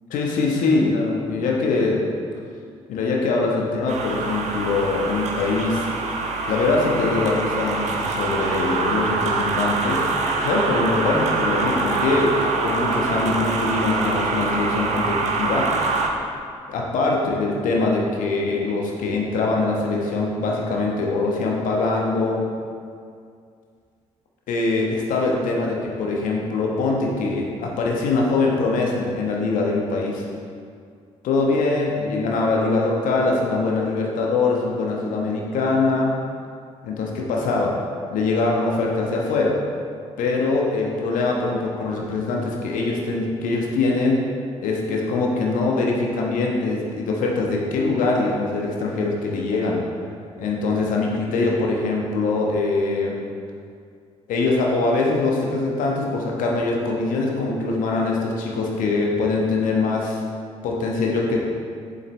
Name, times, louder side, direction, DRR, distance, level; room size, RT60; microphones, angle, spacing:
voice 1, 0.1-2.0 2.9-5.9 6.5-10.1 10.4-12.3 12.6-15.7 16.7-22.4 24.5-30.2 31.2-36.1 36.8-37.7 38.1-39.5 40.2-44.2 44.6-49.8 50.4-53.2 54.3-60.2 60.6-61.4, left 3 dB, 55° left, -1 dB, 1.2 m, -23 dB
sound 1, 3.9-16.1, right 3 dB, 45° right, 0.9 m, -24 dB
8.1 x 7.2 x 3.3 m, 2.2 s
figure-of-eight pair, 40°, 16 cm